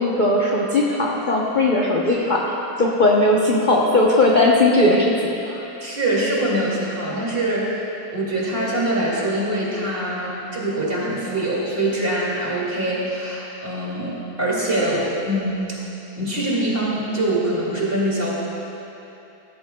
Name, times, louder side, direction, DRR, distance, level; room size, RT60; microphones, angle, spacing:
voice 1, 0.0-5.6, left 2 dB, 40° left, -3 dB, 0.7 m, -18 dB
voice 2, 5.8-7.8 8.1-15.8 16.2-18.3, right 1 dB, 35° right, -6 dB, 2.6 m, -24 dB
17.0 x 13.5 x 2.2 m, 3.0 s
omnidirectional pair, 1.8 m